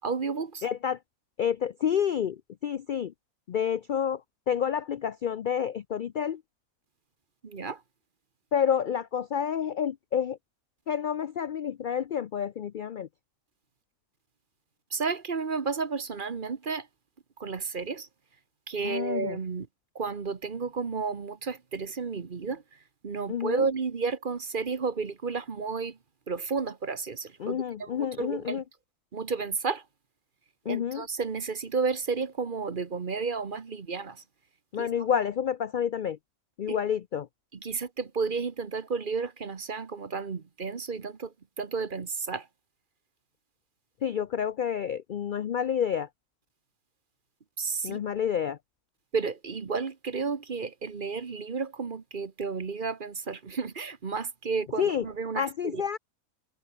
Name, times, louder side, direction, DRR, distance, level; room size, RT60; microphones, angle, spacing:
voice 1, 0.0-0.6 7.4-7.8 14.9-16.9 17.4-18.1 18.7-19.7 19.9-22.6 23.0-26.0 26.3-28.6 29.1-29.8 30.6-34.2 34.8-34.9 36.7-36.8 37.6-42.5 47.6-48.0 49.1-55.8, right 4 dB, 40° right, 1.2 m, -32 dB
voice 2, 0.6-1.0 1.4-3.1 3.5-6.4 8.5-10.4 10.9-13.1 18.8-19.4 23.3-23.7 27.4-28.6 30.7-31.1 34.7-36.2 36.6-37.3 44.0-46.1 47.8-48.6 54.8-55.1 55.4-56.0, left 8 dB, 75° left, 0.4 m, -29 dB
omnidirectional pair, 1.5 m